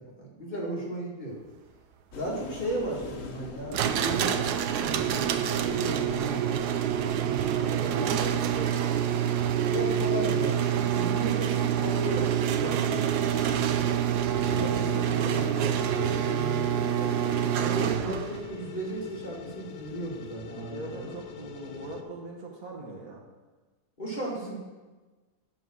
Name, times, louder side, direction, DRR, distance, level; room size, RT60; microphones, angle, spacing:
voice 1, 0.2-1.4 2.1-4.3 4.8-6.6 7.9-8.1 9.6-13.1 14.5-21.2 24.0-24.6, right 1 dB, 25° left, -4 dB, 2.1 m, -35 dB
sound 1, 2.1-7.7, left 4 dB, 55° left, 1.3 m, -45 dB
sound 2, 3.7-18.4, right 9 dB, 80° right, 1.2 m, -27 dB
voice 2, 7.6-9.2 13.4-13.8 20.5-23.2, right 2 dB, 60° right, 0 dB, 1.7 m, -41 dB
sound 3, 14.4-22.0, left 9 dB, 80° left, 1.3 m, -44 dB
12.0 x 4.3 x 6.2 m, 1.3 s
omnidirectional pair, 1.7 m